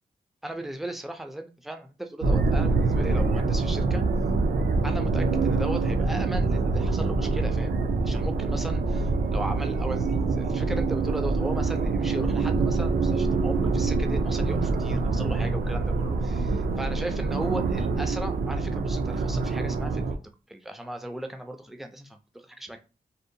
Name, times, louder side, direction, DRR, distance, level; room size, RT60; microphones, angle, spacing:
voice 1, 0.4-4.0 4.8-7.7 8.0-20.2 20.5-22.8, right 1 dB, ahead, 5 dB, 0.3 m, -37 dB
sound 1, 2.2-20.2, right 3 dB, 80° right, 0.4 m, -25 dB
2.7 x 2.0 x 2.6 m, 0.33 s
wide cardioid pair, 100°, 15 cm